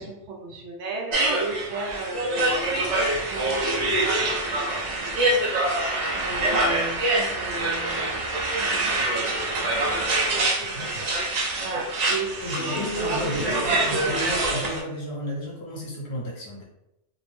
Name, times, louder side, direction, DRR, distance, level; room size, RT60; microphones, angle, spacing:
voice 1, 0.0-5.5 6.1-8.4 8.8-9.7 11.6-14.2, right 3 dB, 75° right, -1 dB, 0.9 m, -35 dB
sound 1, 1.1-14.8, right 2 dB, 55° right, 0.4 m, -25 dB
voice 2, 10.6-11.1 12.4-16.6, left 1 dB, 60° left, -4 dB, 1.0 m, -33 dB
2.6 x 2.0 x 3.1 m, 0.87 s
omnidirectional pair, 1.2 m